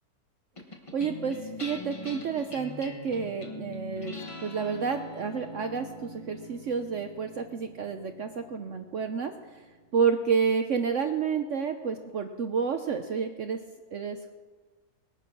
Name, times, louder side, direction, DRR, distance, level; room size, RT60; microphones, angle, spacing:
sound 1, 0.6-11.2, left 1 dB, 20° left, 1.3 m, -44 dB
voice 1, 0.9-4.2 4.4-9.3 9.9-13.6 13.9-14.3, right 6 dB, 60° right, 6 dB, 1.0 m, -30 dB
19.5 x 9.1 x 6.1 m, 1.4 s
omnidirectional pair, 1.7 m